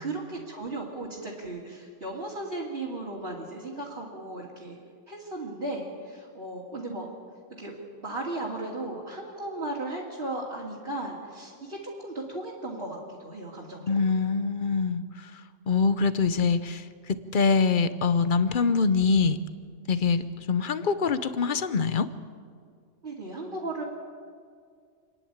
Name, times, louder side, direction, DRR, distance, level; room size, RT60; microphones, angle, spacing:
voice 1, 0.0-4.8 5.1-7.1 7.6-7.7 8.0-13.9 23.0-23.9, right 2 dB, 50° right, -5 dB, 2.7 m, -36 dB
voice 2, 13.8-15.3 15.7-19.4 19.9-20.2 20.5-22.1, left 5 dB, 45° left, 12 dB, 0.9 m, -24 dB
28.0 x 10.5 x 8.8 m, 2.1 s
omnidirectional pair, 1.3 m